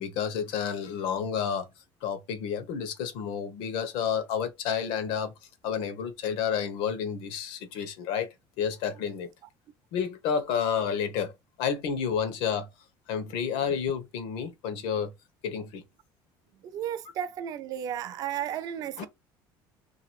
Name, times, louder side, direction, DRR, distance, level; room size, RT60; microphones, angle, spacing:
voice 1, 0.0-1.7 2.0-5.3 5.6-8.3 8.6-9.3 9.9-11.3 11.6-12.7 13.1-15.1 15.4-15.8 19.0-19.1, left 7 dB, 75° left, 1.1 m, -30 dB
voice 2, 16.6-19.1, right 10 dB, 45° right, 0.5 m, -33 dB
3.4 x 2.9 x 4.6 m
cardioid pair, 165°, 9 cm